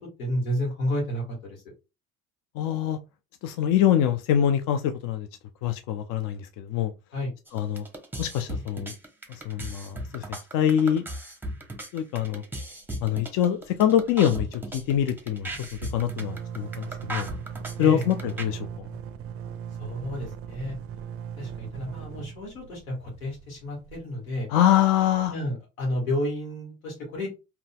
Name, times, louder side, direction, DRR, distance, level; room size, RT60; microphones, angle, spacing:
voice 1, 0.2-1.6 7.1-7.3 17.8-18.0 19.8-20.8 21.4-24.5 25.3-27.3, left 1 dB, 85° left, 1.6 m, -31 dB
voice 2, 2.5-3.0 3.4-5.3 5.6-6.9 7.5-7.8 8.2-8.9 9.3-10.2 10.5-11.0 11.9-12.4 13.0-17.3 17.8-18.9 24.5-25.3, left 10 dB, 55° left, 0.5 m, -24 dB
sound 1, 7.5-18.4, right 1 dB, 5° right, 0.9 m, -36 dB
sound 2, 12.8-13.4 13.7-13.8 14.0-24.7, right 8 dB, 35° right, 0.4 m, -39 dB
3.9 x 2.8 x 2.2 m
hypercardioid pair, 65°, 40 cm